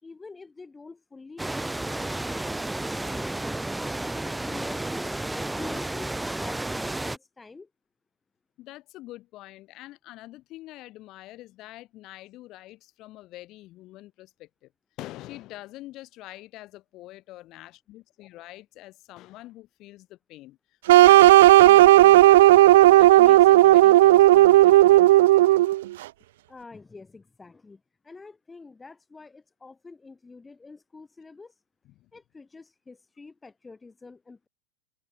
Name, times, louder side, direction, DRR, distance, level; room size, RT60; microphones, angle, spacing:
voice 1, 0.0-3.4 3.7-7.7 26.5-31.5 32.1-34.5, left 4 dB, 10° left, 4.3 m, -47 dB
sound 1, 1.4-7.2, right 2 dB, 5° right, 0.7 m, -32 dB
voice 2, 8.6-14.7 15.0-20.6 21.0-25.1 31.8-32.1, left 17 dB, 35° left, 5.9 m, -45 dB
sound 2, 20.9-25.8, right 16 dB, 55° right, 0.4 m, -14 dB
open air
figure-of-eight pair, 90°, 0 cm